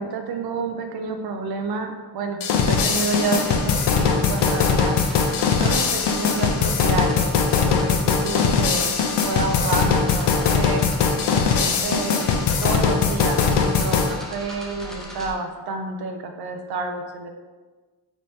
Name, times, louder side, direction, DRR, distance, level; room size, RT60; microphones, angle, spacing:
voice 1, 0.0-5.0 5.6-8.9 9.2-10.8 11.3-12.3 12.6-17.3, right 3 dB, 55° right, 5 dB, 0.5 m, -29 dB
sound 1, 2.4-14.1, left 5 dB, 65° left, 0.5 m, -21 dB
sound 2, 2.7-15.3, left 1 dB, ahead, 0.3 m, -38 dB
3.3 x 3.0 x 4.0 m, 1.3 s
wide cardioid pair, 175°, 45 cm